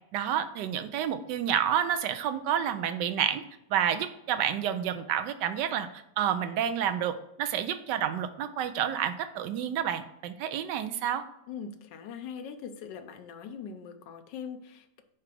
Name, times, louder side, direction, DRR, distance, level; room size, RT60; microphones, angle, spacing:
voice 1, 0.1-3.4 3.7-11.2, right 9 dB, 85° right, 10 dB, 1.2 m, -29 dB
voice 2, 11.5-15.0, left 7 dB, 85° left, 8 dB, 1.3 m, -41 dB
5.0 x 4.5 x 5.8 m, 0.79 s
omnidirectional pair, 1.8 m